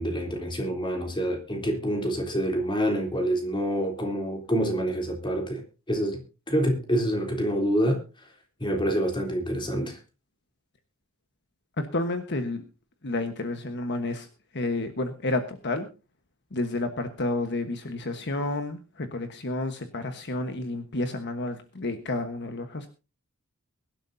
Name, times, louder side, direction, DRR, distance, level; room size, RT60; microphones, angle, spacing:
voice 1, 0.0-5.6 5.9-6.2 6.5-8.0 8.6-10.0, equal, 20° left, 3 dB, 3.4 m, -27 dB
voice 2, 11.8-12.6 13.0-14.3 14.5-15.9 16.5-22.9, left 2 dB, 55° left, 7 dB, 1.3 m, -30 dB
23.0 x 12.0 x 2.7 m, 0.32 s
head